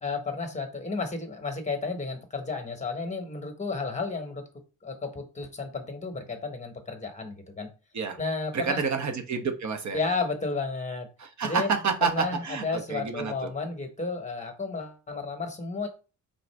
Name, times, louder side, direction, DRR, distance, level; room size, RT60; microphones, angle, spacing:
voice 1, 0.0-4.4 4.8-7.7 8.2-8.8 9.9-11.1 11.4-11.7 12.0-15.9, left 4 dB, 15° left, 5 dB, 1.2 m, -32 dB
voice 2, 8.5-10.0 11.2-13.5, right 5 dB, 40° right, 5 dB, 0.9 m, -29 dB
3.8 x 2.4 x 3.4 m, 0.33 s
hypercardioid pair, 40°, 43 cm